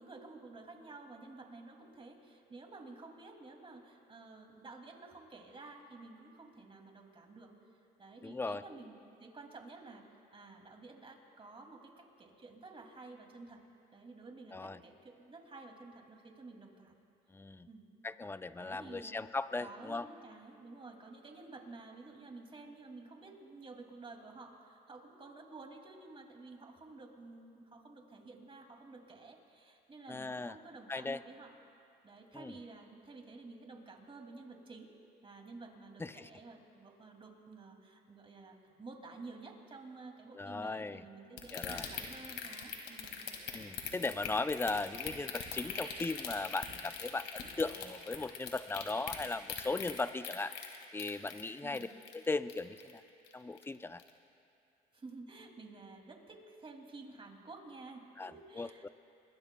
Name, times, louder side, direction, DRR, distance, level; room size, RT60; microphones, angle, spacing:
voice 1, 0.0-7.5 8.0-10.0 10.3-13.6 13.9-17.0 17.7-17.9 18.6-19.2 19.6-31.5 32.0-34.9 35.2-43.2 51.6-51.9 54.9-58.9, right 3 dB, 30° right, 2 dB, 2.5 m, -52 dB
voice 2, 8.2-8.6 14.5-14.8 17.3-17.7 18.0-20.1 30.1-30.6 30.9-31.2 32.3-32.6 36.0-36.3 40.3-41.0 41.5-41.8 43.5-51.9 52.1-53.0 53.3-54.0 58.2-58.9, left 3 dB, 10° left, 12 dB, 0.5 m, -38 dB
sound 1, 41.4-53.0 53.3-53.6 54.0-54.1, left 8 dB, 75° left, 2.1 m, -41 dB
25.5 x 21.0 x 2.3 m, 2.7 s
supercardioid pair, 85°, 18 cm